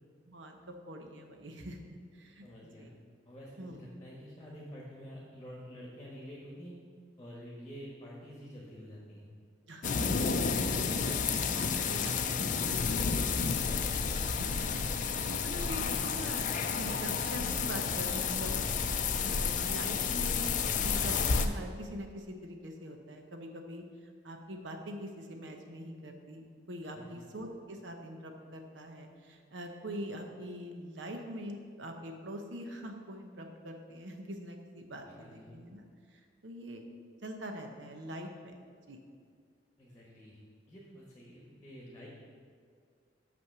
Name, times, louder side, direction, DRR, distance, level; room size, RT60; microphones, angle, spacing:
voice 1, 0.3-1.8 2.1-2.5 2.8-2.9 3.6-3.8 9.7-10.1 11.0-11.2 11.5-12.5 14.2-14.8 15.1-16.5 16.7-18.6 19.2-20.5 20.8-23.8 24.2-36.8 37.2-38.5 38.9-39.0, equal, 75° right, 4 dB, 0.9 m, -43 dB
voice 2, 2.4-2.9 3.2-6.7 7.2-9.3 15.6-15.7 18.3-19.0 26.9-27.2 35.2-35.6 39.8-40.4 40.7-42.1, equal, 20° left, -4 dB, 1.3 m, -49 dB
sound 1, 9.8-21.5, left 5 dB, 45° left, 0.5 m, -31 dB
6.2 x 5.9 x 6.1 m, 2.1 s
head